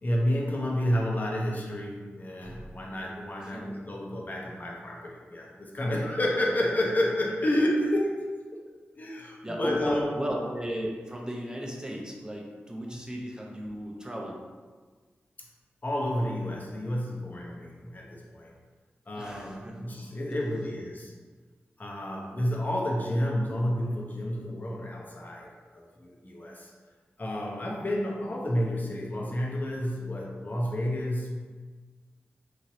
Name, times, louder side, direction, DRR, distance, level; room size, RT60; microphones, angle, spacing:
voice 1, 0.0-8.2 9.0-10.1 15.8-18.5 19.1-21.1 21.8-26.7 27.2-31.3, left 1 dB, 40° left, -2 dB, 0.7 m, -30 dB
voice 2, 9.4-14.4 19.2-19.8, right 1 dB, 15° right, -1 dB, 0.7 m, -35 dB
3.0 x 2.8 x 2.7 m, 1.4 s
cardioid pair, 45°, 4 cm